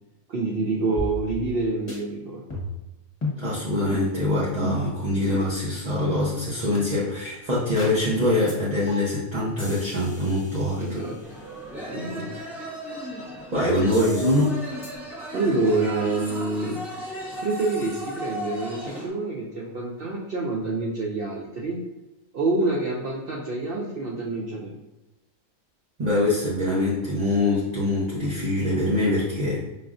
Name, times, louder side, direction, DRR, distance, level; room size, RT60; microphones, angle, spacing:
voice 1, 0.3-2.6 10.8-11.2 11.9-12.3 15.3-16.8 17.3-21.8 22.3-24.8, right 3 dB, 70° right, -2 dB, 0.5 m, -27 dB
sound 1, 1.0-1.6 1.9-2.0 2.5-2.9 3.2-3.4 3.9-4.1 4.6-4.9 5.3-5.5 6.0-6.2 6.7-6.8 7.2-7.3 7.8-8.0 8.5-8.6 8.9-9.2 9.6-11.4 13.9-14.5 14.8-14.9, left 3 dB, 25° left, 0.9 m, -35 dB
voice 2, 3.4-10.8 13.5-14.6 26.0-29.6, left 1 dB, 40° right, -8 dB, 0.7 m, -24 dB
sound 2, 11.2-19.1, equal, ahead, 0.6 m, -36 dB
5.1 x 2.5 x 2.4 m, 1.0 s
omnidirectional pair, 1.5 m